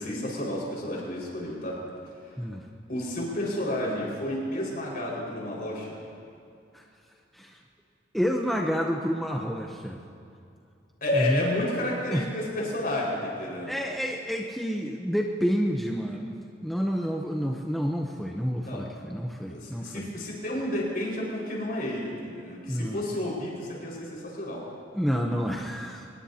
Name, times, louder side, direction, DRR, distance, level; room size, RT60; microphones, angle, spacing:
voice 1, 0.0-1.8 2.2-2.3 2.9-6.0 11.0-13.7 18.6-18.9 19.5-24.7, left 1 dB, 50° left, -4 dB, 5.1 m, -31 dB
voice 2, 8.1-10.0 11.1-11.4 12.1-12.3 13.7-16.3 16.6-20.1 22.7-23.0 24.9-26.1, equal, ahead, 0 dB, 0.7 m, -29 dB
24.5 x 20.5 x 2.9 m, 2.5 s
head